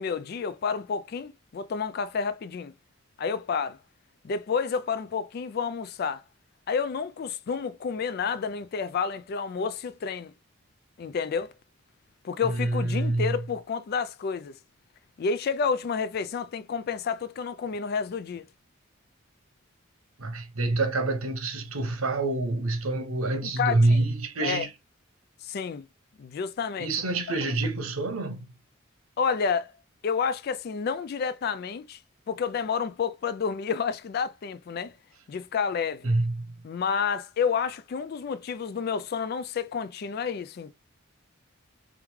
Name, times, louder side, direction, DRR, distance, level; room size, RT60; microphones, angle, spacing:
voice 1, 0.0-2.7 3.2-3.8 4.2-6.2 6.7-10.3 11.0-11.5 12.2-14.5 15.2-18.5 23.4-24.0 24.4-24.6 25.4-25.9 26.2-26.9 29.2-29.7 30.0-32.0 32.3-34.9 35.3-36.1 36.6-40.7, left 6 dB, 45° left, 0.3 m, -30 dB
voice 2, 12.4-13.4 20.2-24.7 26.8-28.4 36.0-36.5, right 2 dB, 85° right, 1.0 m, -26 dB
3.5 x 3.1 x 3.5 m
head